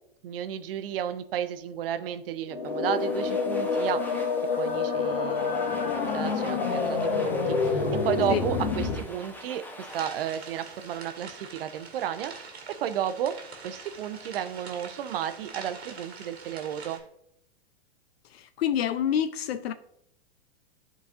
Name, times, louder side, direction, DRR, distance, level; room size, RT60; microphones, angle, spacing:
voice 1, 0.2-4.0 4.6-13.4 13.6-17.0, right 10 dB, 65° right, 0.6 m, -33 dB
sound 1, 2.5-8.9, left 4 dB, 50° left, 1.6 m, -27 dB
Domestic sounds home sounds, 2.6-11.6, equal, 5° left, 0.7 m, -46 dB
sound 2, 9.9-17.0, right 4 dB, 90° right, 1.4 m, -44 dB
voice 2, 18.3-19.7, left 9 dB, 70° left, 0.5 m, -27 dB
11.0 x 4.0 x 2.5 m
hypercardioid pair, 105°, 31 cm